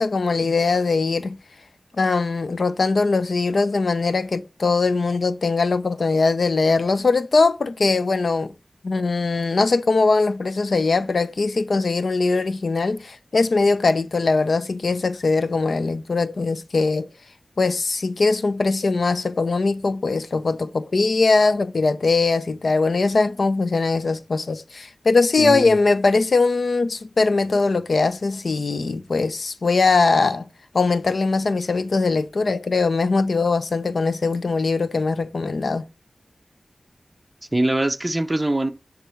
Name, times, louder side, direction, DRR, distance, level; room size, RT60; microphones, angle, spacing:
voice 1, 0.0-1.4 2.0-8.5 8.8-17.1 17.6-30.5 30.7-35.9, left 3 dB, 65° left, 0.6 m, -21 dB
voice 2, 25.4-25.8 37.5-38.7, right 1 dB, 20° right, 0.9 m, -22 dB
10.0 x 3.6 x 5.8 m
wide cardioid pair, 85°, 0 cm